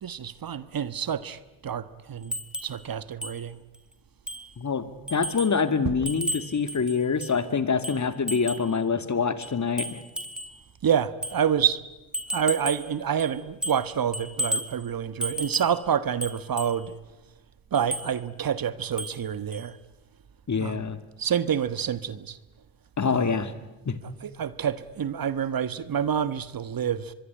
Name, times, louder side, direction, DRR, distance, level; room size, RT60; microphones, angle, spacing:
voice 1, 0.0-2.4 2.6-3.6 5.8-6.0 10.8-11.8 12.3-16.9 17.7-19.8 20.6-20.8 21.2-22.4 23.1-23.4 24.2-27.1, right 8 dB, 50° right, 1.5 m, -28 dB
sound 1, 2.3-2.8 3.2-3.4 3.7-3.8 4.3-4.5 5.1-5.6 6.1-7.4 7.8-8.7 9.4-10.6 11.2-11.4 12.1-12.9 13.2-13.9 14.1-14.8 15.2-15.8 16.2-16.8 17.7-18.1 19.0-19.2 19.5-19.6, equal, ahead, 3.7 m, -33 dB
voice 2, 5.1-10.0 20.5-21.0 23.0-23.5 23.9-24.0, left 5 dB, 40° left, 2.6 m, -25 dB
24.5 x 22.5 x 10.0 m
supercardioid pair, 55°, 44 cm